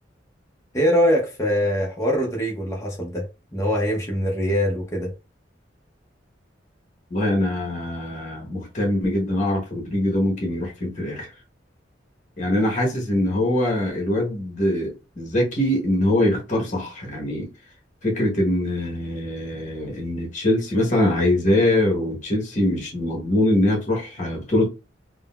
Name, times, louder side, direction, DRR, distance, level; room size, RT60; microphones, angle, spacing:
voice 1, 0.7-5.1, equal, 15° left, 0.6 m, -23 dB
voice 2, 7.1-11.3 12.4-17.5 18.0-24.7, left 1 dB, 40° left, 1.1 m, -23 dB
3.7 x 2.0 x 2.3 m
head